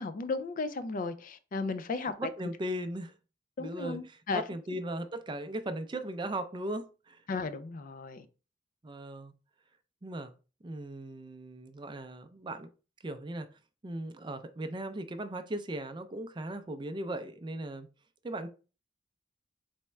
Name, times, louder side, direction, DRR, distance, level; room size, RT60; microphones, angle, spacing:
voice 1, 0.0-2.3 3.6-4.4 7.3-8.3, left 4 dB, 45° left, 0.4 m, -35 dB
voice 2, 2.2-3.1 3.6-4.0 4.5-7.2 8.8-9.3 10.0-10.3 10.6-12.7 13.0-13.5 13.8-17.9 18.2-18.5, right 1 dB, 25° right, 0.4 m, -38 dB
4.2 x 3.5 x 3.2 m
head